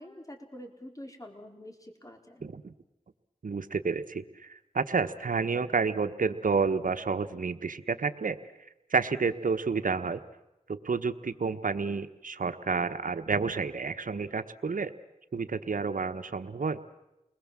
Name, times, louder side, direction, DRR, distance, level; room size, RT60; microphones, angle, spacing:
voice 1, 0.0-2.4, left 1 dB, 25° left, 4 dB, 4.3 m, -46 dB
voice 2, 2.4-2.7 3.4-8.4 8.9-10.2 10.7-14.9 15.3-16.8, right 5 dB, 75° right, 8 dB, 1.2 m, -30 dB
29.5 x 21.0 x 7.5 m, 0.92 s
cardioid pair, 40°, 14 cm